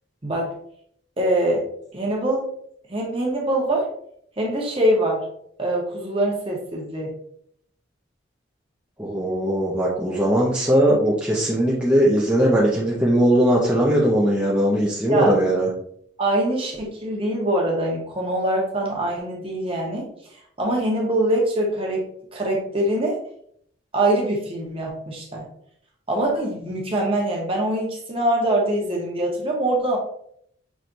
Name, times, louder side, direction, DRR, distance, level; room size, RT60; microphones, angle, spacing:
voice 1, 0.2-0.5 1.2-1.6 1.9-2.4 2.9-3.9 4.4-5.2 5.6-7.1 15.1-15.3 16.2-20.1 20.6-22.1 22.3-23.2 23.9-25.4 26.1-30.0, right 1 dB, 30° right, -1 dB, 1.1 m, -23 dB
voice 2, 9.0-15.7, right 1 dB, 5° right, -6 dB, 0.7 m, -19 dB
6.0 x 3.2 x 2.7 m, 0.67 s
head